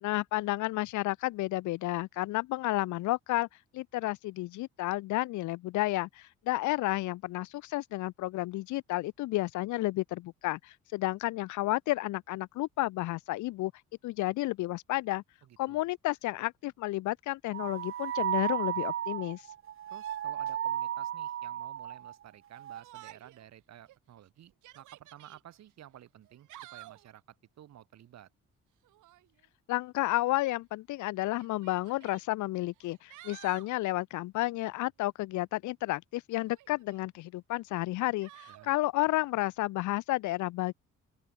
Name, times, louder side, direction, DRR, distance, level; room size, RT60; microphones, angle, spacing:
voice 1, 0.0-3.5 3.7-13.7 14.0-15.2 15.6-19.4 29.7-40.7, left 18 dB, 75° left, 0.5 m, -31 dB
voice 2, 15.4-15.8 19.9-28.3 38.5-38.8, right 11 dB, 60° right, 1.2 m, -53 dB
sound 1, 17.5-22.1 22.5-22.8, right 10 dB, 45° right, 0.6 m, -34 dB
Yell, 22.8-23.4 23.9-24.0 24.5-25.4 26.3-27.1 28.8-29.3 30.4-30.5 31.4-32.2 32.8-33.7 36.4-37.0 38.2-38.7, right 16 dB, 85° right, 1.3 m, -52 dB
open air
cardioid pair, 90°, 30 cm